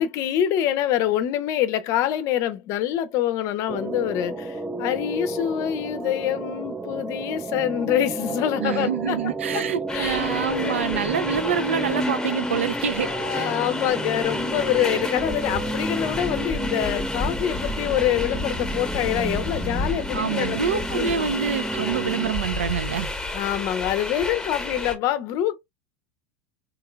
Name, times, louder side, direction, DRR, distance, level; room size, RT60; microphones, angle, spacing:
voice 1, 0.0-9.2 9.5-9.6 9.9-10.2 10.5-10.9 13.0-20.6 20.9-21.4 23.3-25.6, left 11 dB, 50° left, 0.6 m, -25 dB
sound 1, 3.7-22.3, right 2 dB, 10° right, 0.5 m, -32 dB
voice 2, 8.6-13.5 20.1-23.1, right 7 dB, 80° right, 0.4 m, -26 dB
sound 2, 9.9-24.9, left 2 dB, 10° left, 1.0 m, -31 dB
3.7 x 2.9 x 2.3 m
figure-of-eight pair, 80°, 7 cm